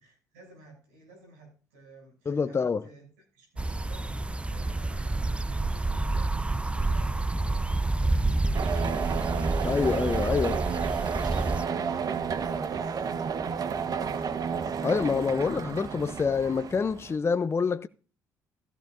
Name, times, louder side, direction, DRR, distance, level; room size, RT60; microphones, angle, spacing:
voice 1, 0.0-3.1 3.3-9.0, right 2 dB, 85° right, 7.0 m, -53 dB
voice 2, 2.3-2.8 9.6-10.6 14.8-17.9, left 5 dB, 30° left, 0.6 m, -26 dB
sound 1, 3.6-11.6, right 2 dB, 15° right, 0.7 m, -28 dB
sound 2, 8.5-17.2, right 6 dB, 50° right, 1.1 m, -31 dB
15.5 x 12.0 x 2.6 m
hypercardioid pair, 55°, 8 cm